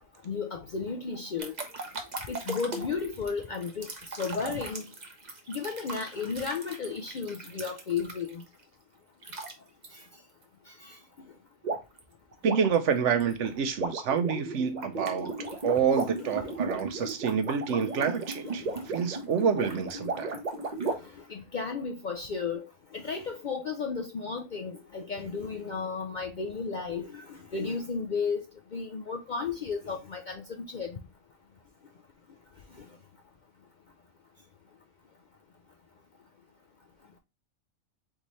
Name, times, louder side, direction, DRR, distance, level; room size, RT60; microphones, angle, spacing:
voice 1, 0.2-1.5 2.3-4.8 5.5-8.4 9.9-10.0 10.8-11.0 15.4-15.5 16.1-16.6 18.2-18.9 21.0-22.7 22.9-28.4 28.7-31.0 32.8-32.9, left 5 dB, 55° left, 0.5 m, -34 dB
sound 1, 1.4-8.4 9.2-9.5 9.8-10.0 11.6-12.0 12.3-20.9, right 3 dB, 40° right, 0.9 m, -36 dB
voice 2, 12.4-15.3 15.6-20.4, right 7 dB, 70° right, 1.0 m, -28 dB
4.0 x 3.5 x 3.0 m
omnidirectional pair, 1.3 m